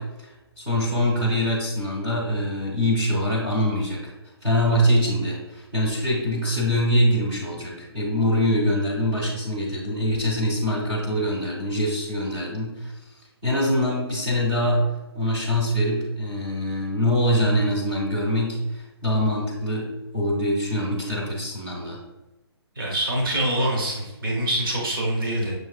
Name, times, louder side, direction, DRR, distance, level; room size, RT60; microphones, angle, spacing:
voice 1, 0.0-4.1 4.4-12.9 13.4-14.8 15.1-19.9 20.1-22.0, equal, 10° right, -6 dB, 0.6 m, -24 dB
voice 2, 22.8-25.5, right 1 dB, 55° right, -1 dB, 1.1 m, -25 dB
6.2 x 2.8 x 2.4 m, 1.0 s
hypercardioid pair, 175°, 14 cm